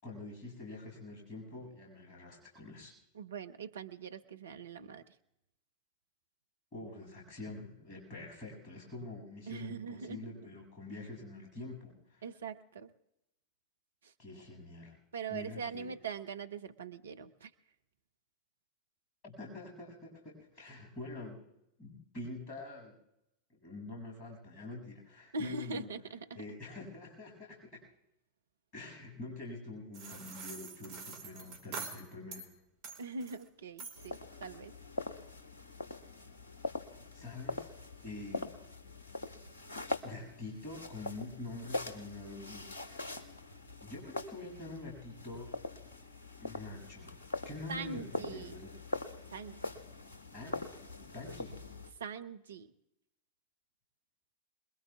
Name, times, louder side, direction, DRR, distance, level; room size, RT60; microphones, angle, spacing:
voice 1, 0.0-2.9 6.7-12.2 14.2-15.0 15.3-15.9 19.2-21.4 21.8-23.0 23.5-25.9 26.4-27.8 28.7-32.5 37.1-37.7 38.0-38.5 40.0-43.1 43.8-45.6 46.4-47.2 47.4-48.7 50.3-50.6 51.1-51.6, left 2 dB, 40° left, -1 dB, 7.1 m, -46 dB
voice 2, 3.1-5.0 9.5-10.3 12.2-12.9 14.0-14.1 15.1-17.5 25.3-26.4 33.0-34.7 47.7-48.5 49.3-49.7 52.0-52.7, right 4 dB, 65° right, 9 dB, 0.8 m, -42 dB
sound 1, 29.9-32.5 32.8-33.4 33.8-34.2, right 4 dB, 45° right, 2.7 m, -45 dB
sound 2, 34.0-51.9, left 2 dB, 70° left, 1.3 m, -43 dB
27.5 x 21.0 x 2.4 m, 0.85 s
figure-of-eight pair, 90°, 0 cm